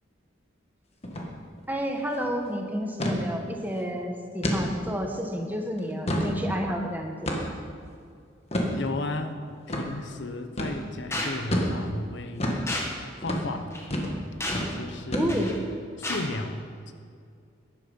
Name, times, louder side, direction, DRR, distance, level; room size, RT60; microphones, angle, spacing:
sound 1, 1.0-1.3 1.6-1.7 2.0-2.3 3.0-3.2 3.7-3.8 4.4-4.6 5.1-5.2 5.8-6.3 7.3-7.6 8.5-8.7 9.7-9.9 10.6-10.8 11.5-11.7 12.4-12.6 13.2-13.5 13.9-14.2 14.5-14.7 15.1-15.6, equal, 35° left, 1.6 m, -28 dB
voice 1, 1.7-7.1 15.1-15.5, equal, 10° right, 2 dB, 1.2 m, -30 dB
voice 2, 8.7-12.5 13.2-13.7 14.5-15.5 16.0-16.9, left 2 dB, 65° left, 7 dB, 0.9 m, -34 dB
sound 2, 11.1-11.3 12.7-12.9 13.7-13.8 14.4-14.7 15.3-15.6 16.0-16.2, left 1 dB, 15° left, 1.6 m, -31 dB
13.0 x 11.0 x 5.5 m, 2.3 s
head